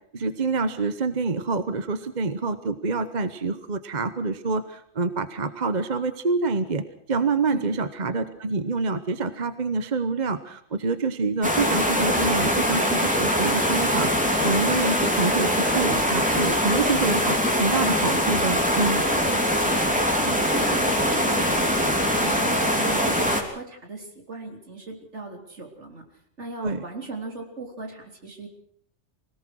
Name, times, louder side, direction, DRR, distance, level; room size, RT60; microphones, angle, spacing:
voice 1, 0.1-19.0 26.6-26.8, right 4 dB, 40° right, 11 dB, 1.1 m, -27 dB
voice 2, 7.5-7.8 19.1-19.9 20.2-26.1 26.4-28.5, right 3 dB, 70° right, 3 dB, 4.0 m, -37 dB
sound 1, 11.4-23.4, equal, 5° right, 3.2 m, -22 dB
24.5 x 18.0 x 6.3 m, 0.65 s
omnidirectional pair, 1.2 m